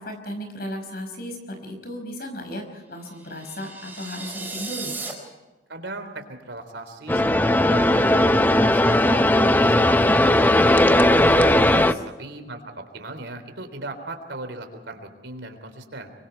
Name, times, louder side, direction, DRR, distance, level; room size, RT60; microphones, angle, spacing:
voice 1, 0.0-4.9 11.7-12.0, equal, 55° left, 5 dB, 5.4 m, -35 dB
sound 1, 3.1-5.1, right 3 dB, 10° right, 4.2 m, -35 dB
voice 2, 5.7-11.4 12.2-16.1, right 2 dB, 75° right, 7 dB, 3.6 m, -38 dB
sound 2, 7.1-11.9, left 1 dB, 10° left, 0.6 m, -17 dB
25.0 x 24.0 x 4.6 m, 1.2 s
head